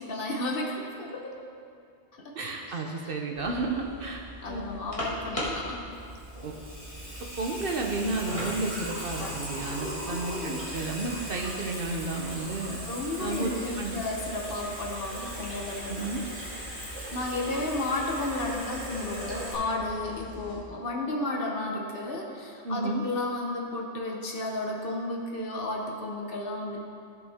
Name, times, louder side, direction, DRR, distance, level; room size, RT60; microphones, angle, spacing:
voice 1, 0.0-1.3 2.2-2.4 4.4-5.8 10.1-10.7 12.8-16.1 16.8-26.8, left 2 dB, 55° left, 0 dB, 1.1 m, -33 dB
voice 2, 2.3-4.2 4.5-4.6 6.4-6.5 7.4-12.8 13.2-14.0 15.9-16.2 22.6-23.0, right 3 dB, 55° right, 1 dB, 0.9 m, -32 dB
sound 1, 3.3-20.6, equal, 30° left, 1.6 m, -42 dB
Water tap faucet / Sink (filling or washing), 5.9-19.5, equal, 10° right, 2.1 m, -39 dB
14.0 x 5.4 x 3.5 m, 2.5 s
omnidirectional pair, 1.2 m